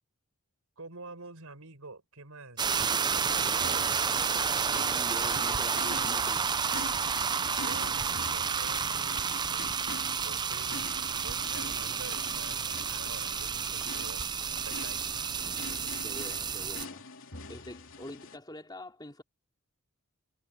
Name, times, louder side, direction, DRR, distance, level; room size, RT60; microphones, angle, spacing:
voice 1, 0.8-4.0 7.4-9.7 10.2-10.9 11.2-15.3, right 3 dB, 75° right, 5.1 m, -48 dB
sound 1, 2.6-16.8, right 6 dB, 20° right, 0.4 m, -30 dB
sound 2, 3.3-18.4, left 3 dB, 65° left, 3.1 m, -46 dB
voice 2, 4.7-6.7 16.0-19.2, left 1 dB, 20° left, 3.0 m, -45 dB
head